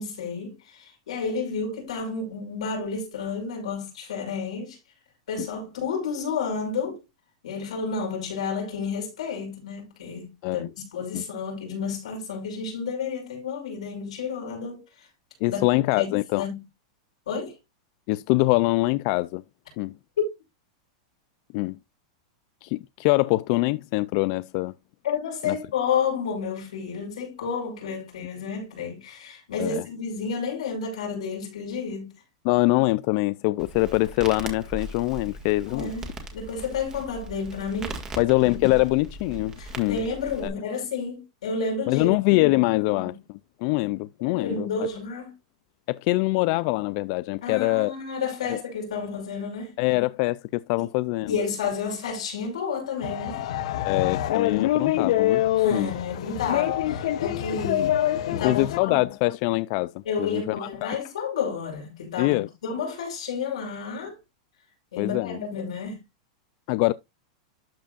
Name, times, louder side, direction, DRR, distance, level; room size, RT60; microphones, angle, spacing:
voice 1, 0.0-4.8 5.3-7.0 7.4-10.6 10.9-14.8 15.5-15.6 15.9-16.6 17.3-17.5 25.0-32.1 35.7-36.0 36.3-38.0 39.6-42.1 42.8-43.0 44.2-45.3 47.4-49.7 51.3-53.4 55.6-58.0 58.3-59.0 60.1-64.2 64.9-66.0, left 5 dB, 90° left, 5.6 m, -31 dB
voice 2, 15.4-16.4 18.1-19.4 19.8-19.9 21.5-21.8 22.6-24.7 25.4-25.6 29.6-29.8 32.4-35.9 38.2-40.0 40.4-40.5 41.9-43.2 43.6-44.7 45.9-48.0 48.5-48.6 49.8-51.3 53.8-55.4 55.7-55.9 58.3-61.0 62.2-62.5 65.0-65.4 66.7-66.9, left 22 dB, 50° left, 0.3 m, -24 dB
Crackle, 33.6-40.5, right 2 dB, 20° right, 2.0 m, -39 dB
sound 1, 53.0-58.8, left 12 dB, 70° left, 0.8 m, -25 dB
12.5 x 5.1 x 2.4 m
supercardioid pair, 145°, 3 cm